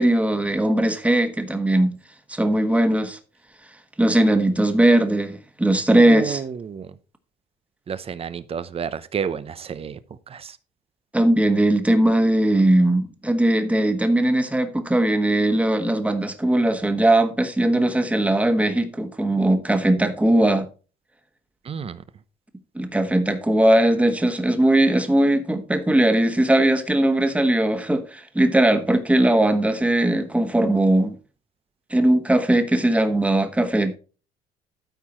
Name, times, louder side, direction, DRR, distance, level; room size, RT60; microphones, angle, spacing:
voice 1, 0.0-2.0 2.3-3.2 4.0-6.4 11.1-20.7 22.7-31.2 31.9-34.0, right 1 dB, 10° right, 1.4 m, -19 dB
voice 2, 5.9-6.9 7.9-10.0 10.3-10.6 21.6-22.0, right 7 dB, 35° right, 0.8 m, -30 dB
13.0 x 4.7 x 4.3 m
cardioid pair, 110°, 17 cm